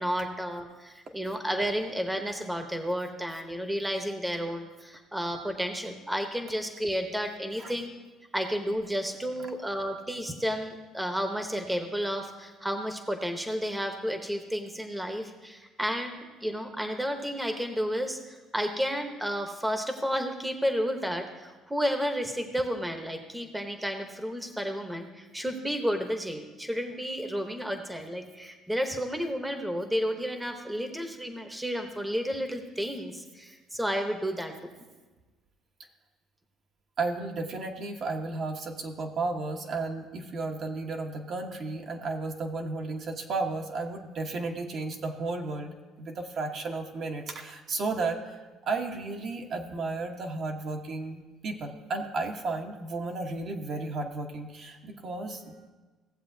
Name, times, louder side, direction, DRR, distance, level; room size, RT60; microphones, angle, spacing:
voice 1, 0.0-7.9 8.3-34.7, equal, 5° right, 5 dB, 0.9 m, -32 dB
voice 2, 37.0-55.6, right 3 dB, 50° right, 2 dB, 1.1 m, -33 dB
16.5 x 7.4 x 2.7 m, 1.3 s
cardioid pair, 110°, 0 cm